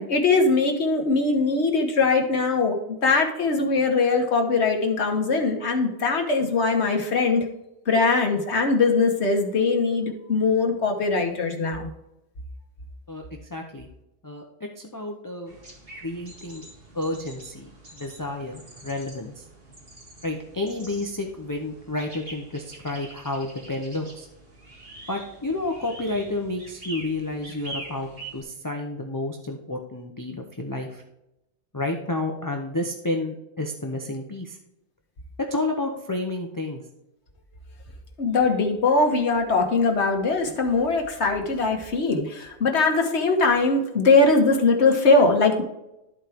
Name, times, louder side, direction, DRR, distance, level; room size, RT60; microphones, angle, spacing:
voice 1, 0.0-2.8 3.0-7.4 7.9-11.9 38.2-45.6, left 3 dB, 75° left, 2 dB, 1.6 m, -21 dB
voice 2, 13.5-13.9 14.2-15.6 16.0-16.6 16.9-19.4 20.2-24.3 25.1-31.0 31.7-34.6 35.5-36.8, left 2 dB, 20° left, 2 dB, 0.7 m, -30 dB
sound 1, 15.5-28.4, right 2 dB, 55° right, 2.2 m, -44 dB
13.5 x 4.5 x 3.5 m, 0.89 s
omnidirectional pair, 1.2 m